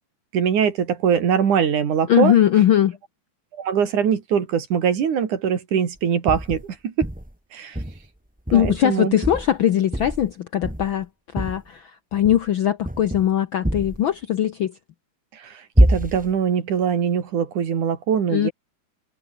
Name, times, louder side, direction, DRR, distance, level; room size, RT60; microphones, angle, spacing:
voice 1, 0.3-2.4 3.5-7.1 7.5-7.8 8.5-9.1 15.3-18.5, right 7 dB, 80° right, 4.1 m, -22 dB
voice 2, 2.1-3.0 8.5-11.1 11.3-14.7 18.3-18.5, left 11 dB, 85° left, 1.1 m, -20 dB
sound 1, 6.3-6.7 7.0-7.3 7.7-8.0 8.5-8.9 9.2-9.6 9.9-10.3 10.6-11.0 11.4-11.6 12.1-12.5 12.8-13.3 13.6-14.0 15.8-16.3, equal, 5° right, 1.8 m, -23 dB
omnidirectional pair, 3.5 m